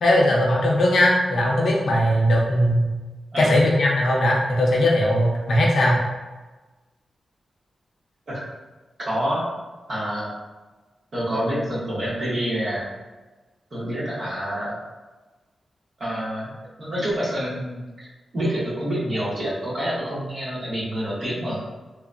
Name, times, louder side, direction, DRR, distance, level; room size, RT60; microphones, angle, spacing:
voice 1, 0.0-2.9 3.4-6.0, left 1 dB, 70° left, -2 dB, 0.5 m, -19 dB
voice 2, 9.0-9.5 9.9-10.3 11.1-12.9 13.7-14.8 16.0-16.5 16.8-18.1 18.3-21.6, equal, 55° right, -8 dB, 1.1 m, -27 dB
2.8 x 2.1 x 2.4 m, 1.2 s
wide cardioid pair, 130°, 0 cm